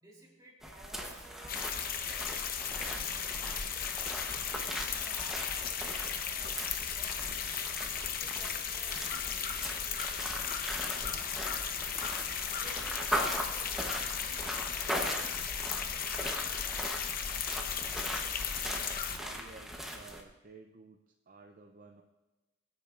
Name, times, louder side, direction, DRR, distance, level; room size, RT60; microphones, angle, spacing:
voice 1, 0.0-3.6 4.5-6.7 6.9-7.6 8.2-12.1 12.6-16.7, right 1 dB, 20° right, -4 dB, 3.3 m, -57 dB
sound 1, 0.6-20.2, equal, ahead, 0.9 m, -40 dB
sound 2, 1.5-19.2, left 7 dB, 45° left, 0.8 m, -36 dB
voice 2, 19.1-21.0 21.3-22.0, right 3 dB, 40° right, 4 dB, 0.5 m, -53 dB
23.5 x 8.4 x 2.5 m, 1.1 s
head